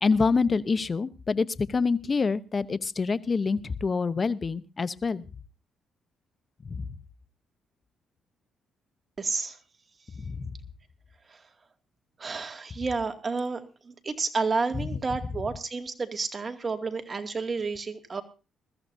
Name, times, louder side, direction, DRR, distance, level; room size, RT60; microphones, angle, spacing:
voice 1, 0.0-5.2 6.7-6.8 10.2-10.5, left 4 dB, 35° left, 15 dB, 0.9 m, -26 dB
voice 2, 9.2-9.6 12.2-18.2, right 4 dB, 35° right, 6 dB, 2.3 m, -30 dB
21.5 x 14.0 x 2.7 m, 0.32 s
cardioid pair, 90°, 0 cm